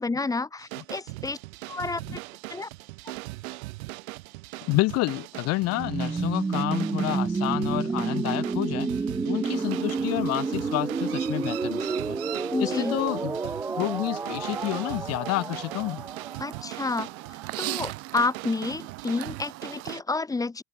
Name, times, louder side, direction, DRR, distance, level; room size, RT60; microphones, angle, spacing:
voice 1, 0.0-1.4 1.7-2.0 2.5-2.7 12.5-13.0 16.4-17.1 17.6-20.6, left 3 dB, 10° left, 1.3 m, -29 dB
sound 1, 0.6-20.0, right 22 dB, 80° right, 3.5 m, -41 dB
voice 2, 4.6-8.9 9.2-12.2 12.6-13.4 13.8-16.0, left 20 dB, 40° left, 0.8 m, -29 dB
sound 2, 5.7-17.5, right 4 dB, 5° right, 0.4 m, -30 dB
Chirp tweet, 9.5-19.9, right 19 dB, 35° right, 0.7 m, -40 dB
cardioid pair, 160°, 41 cm